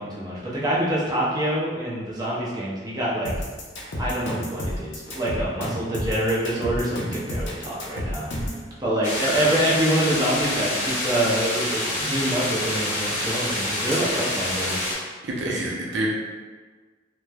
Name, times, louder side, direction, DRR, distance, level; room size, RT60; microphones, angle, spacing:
voice 1, 0.0-3.3 4.0-8.3 8.8-14.8 15.5-15.6, right 1 dB, 20° right, -6 dB, 0.5 m, -26 dB
sound 1, 3.3-8.6, equal, 75° left, 0.6 m, -30 dB
sound 2, 9.0-15.0, left 1 dB, 40° left, 0.7 m, -27 dB
voice 2, 15.2-16.1, right 1 dB, 80° right, -2 dB, 0.5 m, -28 dB
3.0 x 2.0 x 2.2 m, 1.4 s
head